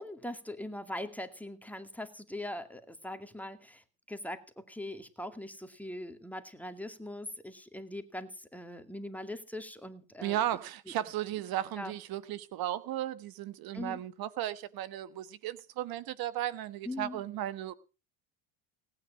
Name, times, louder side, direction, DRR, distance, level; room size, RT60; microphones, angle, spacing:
voice 1, 0.0-10.4 11.8-12.0 13.7-14.0 16.8-17.2, left 1 dB, 5° left, 2.3 m, -41 dB
voice 2, 10.2-17.7, right 12 dB, 60° right, 1.3 m, -35 dB
18.5 x 9.9 x 6.2 m
supercardioid pair, 90°, 41 cm